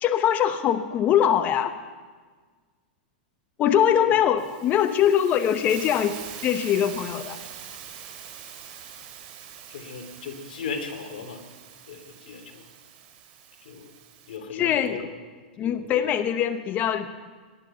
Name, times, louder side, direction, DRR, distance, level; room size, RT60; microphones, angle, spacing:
voice 1, 0.0-1.7 3.6-6.2 6.4-7.4 14.6-15.0 15.6-17.3, left 9 dB, 30° left, 10 dB, 0.9 m, -22 dB
Hiss, 4.4-14.4, right 9 dB, 50° right, 3.1 m, -43 dB
voice 2, 9.7-11.4 11.9-12.7 13.6-13.9 14.3-15.1 15.6-16.1, left 5 dB, 75° left, 5 dB, 2.8 m, -37 dB
19.0 x 11.0 x 5.6 m, 1.5 s
hypercardioid pair, 120°, 5 cm